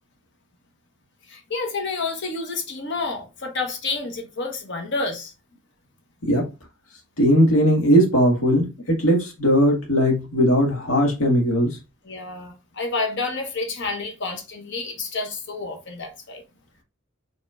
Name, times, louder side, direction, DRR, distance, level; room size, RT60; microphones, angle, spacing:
voice 1, 1.3-5.3 12.0-16.4, left 3 dB, 60° left, 1.2 m, -29 dB
voice 2, 7.2-11.8, equal, 90° left, 1.9 m, -19 dB
4.6 x 3.6 x 2.5 m
head